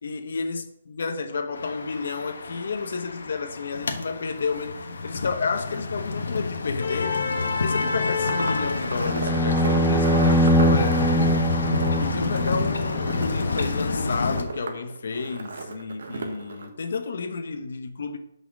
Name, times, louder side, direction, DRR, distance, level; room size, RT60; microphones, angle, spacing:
voice 1, 0.0-4.8 5.0-7.2 7.6-11.1 12.0-18.2, left 4 dB, 60° left, 1.0 m, -31 dB
sound 1, 1.5-14.4, left 3 dB, 85° left, 1.2 m, -28 dB
sound 2, 7.3-16.7, right 4 dB, 65° right, 1.4 m, -36 dB
sound 3, 9.1-13.3, equal, ahead, 0.3 m, -23 dB
6.2 x 5.3 x 6.1 m
hypercardioid pair, 175°, 0 cm